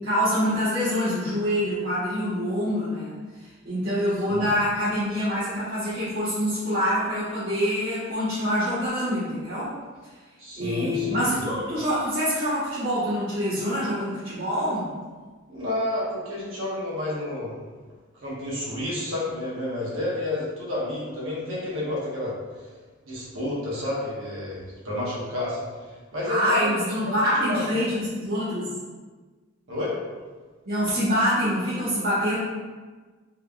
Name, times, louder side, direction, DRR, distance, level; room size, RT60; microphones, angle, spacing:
voice 1, 0.0-9.8 10.0-10.1 10.6-14.9 26.2-28.7 30.6-32.4, equal, 50° right, -12 dB, 1.1 m, -25 dB
voice 2, 10.4-11.4 15.5-17.5 18.2-22.7 23.0-27.6 29.7-30.0, left 1 dB, 90° right, -6 dB, 1.2 m, -30 dB
3.5 x 3.4 x 2.3 m, 1.4 s
head